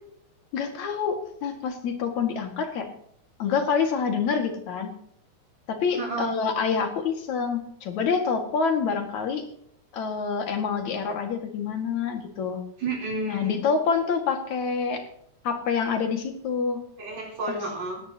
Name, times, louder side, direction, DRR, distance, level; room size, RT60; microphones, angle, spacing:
voice 1, 0.5-1.2 1.4-2.9 3.4-4.9 5.7-9.5 9.9-12.6 13.3-15.1 15.4-16.8 17.5-17.6, left 5 dB, 65° left, 5 dB, 3.3 m, -27 dB
voice 2, 5.9-6.3 12.8-13.6 17.0-18.0, right 2 dB, 60° right, -2 dB, 4.9 m, -31 dB
18.5 x 15.0 x 2.9 m, 0.70 s
omnidirectional pair, 3.5 m